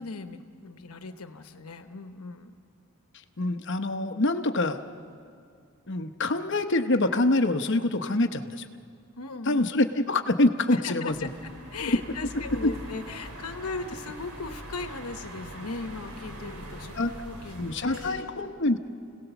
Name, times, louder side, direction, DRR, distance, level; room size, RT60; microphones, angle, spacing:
voice 1, 0.0-2.5 9.1-9.7 10.7-18.4, left 3 dB, 90° left, 7 dB, 1.0 m, -38 dB
voice 2, 3.4-4.8 5.9-8.7 9.5-11.2 11.8-11.9 12.6-12.7 17.0-17.1 17.6-18.8, left 2 dB, 55° left, 8 dB, 0.9 m, -25 dB
sound 1, 11.1-18.2, right 1 dB, 80° right, 2.7 m, -42 dB
29.5 x 17.5 x 7.0 m, 2.4 s
head